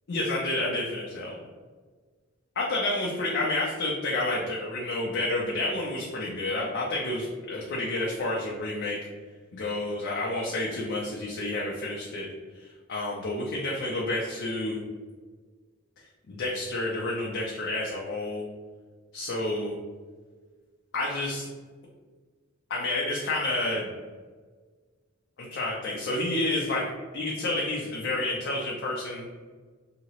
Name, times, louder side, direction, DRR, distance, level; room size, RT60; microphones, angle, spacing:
voice 1, 0.1-1.5 2.6-9.0 9.5-12.3 12.5-14.8 16.3-18.5 19.1-19.7 20.9-21.5 22.7-23.9 25.4-26.8 27.1-29.3, left 2 dB, 55° left, -3 dB, 0.5 m, -30 dB
2.9 x 2.8 x 2.9 m, 1.4 s
head